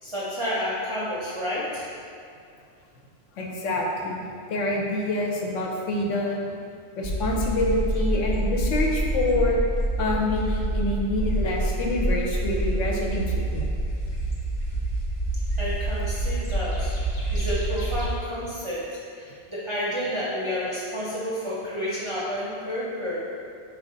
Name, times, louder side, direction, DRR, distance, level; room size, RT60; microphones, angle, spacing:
voice 1, 0.0-1.9 15.6-16.9 17.3-23.2, equal, 35° right, -8 dB, 0.5 m, -30 dB
voice 2, 3.4-6.5 7.0-9.6 10.0-13.7, left 2 dB, 85° left, -2 dB, 1.0 m, -27 dB
sound 1, 7.0-18.2, right 1 dB, 45° left, 0.6 m, -27 dB
4.5 x 2.4 x 3.7 m, 2.3 s
omnidirectional pair, 1.3 m